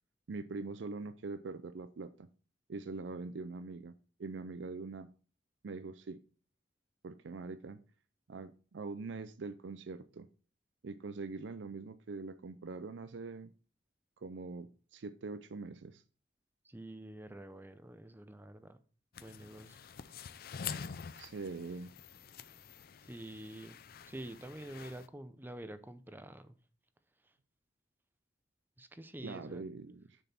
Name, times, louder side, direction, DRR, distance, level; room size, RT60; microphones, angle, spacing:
voice 1, 0.3-2.3 2.7-3.9 4.2-5.1 5.6-6.2 7.0-7.8 8.3-10.3 10.8-13.5 14.2-16.0 21.2-21.9 29.2-30.2, right 3 dB, 85° right, 0.5 m, -43 dB
voice 2, 16.6-18.8 19.2-19.8 23.0-23.8 24.0-26.6 28.8-29.6, right 1 dB, 10° right, 0.5 m, -47 dB
sound 1, 19.1-25.1, left 7 dB, 55° left, 0.5 m, -47 dB
6.7 x 6.2 x 4.2 m
head